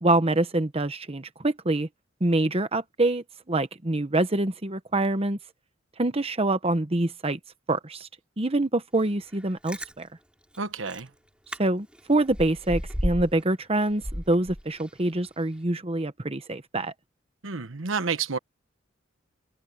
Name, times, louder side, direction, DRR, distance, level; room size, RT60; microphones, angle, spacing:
voice 1, 0.0-1.9 2.2-5.4 6.0-7.4 7.7-8.1 8.4-10.1 11.6-16.9, right 2 dB, 30° right, 1.1 m, -25 dB
Chewing mastication, 9.4-9.9 10.5-10.6 10.9-11.1 11.5-11.6 11.9-13.4 13.8-15.0 15.4-15.5, equal, 5° right, 6.4 m, -33 dB
voice 2, 10.6-11.1 17.4-18.4, right 5 dB, 85° right, 1.2 m, -29 dB
head